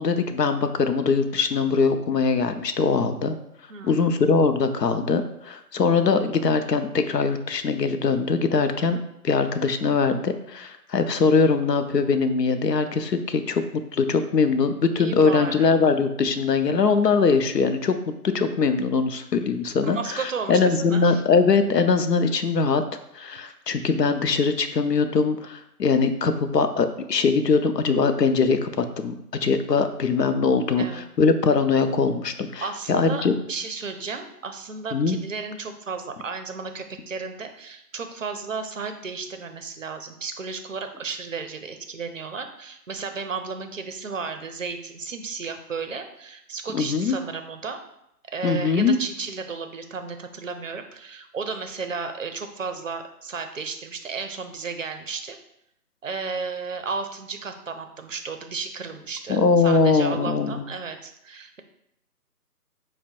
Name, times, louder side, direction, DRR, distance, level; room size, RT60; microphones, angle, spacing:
voice 1, 0.0-3.4 3.8-13.6 13.9-22.8 23.1-29.1 29.4-33.3 34.9-35.2 46.7-47.2 48.4-49.0 59.3-60.6, left 4 dB, 80° left, 9 dB, 0.7 m, -22 dB
voice 2, 3.7-4.1 15.0-15.7 19.8-21.2 30.8-31.0 32.6-47.8 48.3-55.4 56.0-61.6, right 4 dB, 55° right, 7 dB, 0.5 m, -33 dB
5.4 x 2.1 x 4.4 m, 0.79 s
figure-of-eight pair, 165°, 48 cm